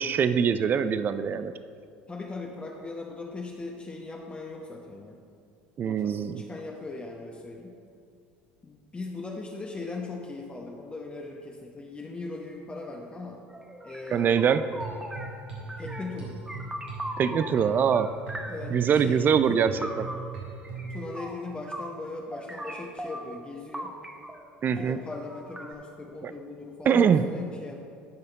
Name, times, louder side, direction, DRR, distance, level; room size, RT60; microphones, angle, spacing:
voice 1, 0.0-1.5 5.8-6.4 14.1-14.6 17.2-18.1 18.7-19.7 20.0-20.1 24.6-25.0 26.2-26.3 26.9-27.2, right 7 dB, 35° right, 12 dB, 0.4 m, -23 dB
voice 2, 2.1-5.2 5.8-7.8 8.6-13.4 13.8-14.5 15.8-16.4 18.5-19.6 20.9-24.0 24.7-27.8, left 3 dB, 20° left, 0 dB, 0.9 m, -39 dB
sound 1, 13.5-15.4 15.7-16.2 16.5-17.6 17.9-19.0 19.3-22.0 22.3-23.4 23.7-25.7, right 1 dB, 10° right, 0.9 m, -40 dB
sound 2, 14.5-21.0, right 3 dB, 80° right, 2.0 m, -40 dB
12.0 x 5.6 x 4.0 m, 2.3 s
hypercardioid pair, 70°, 5 cm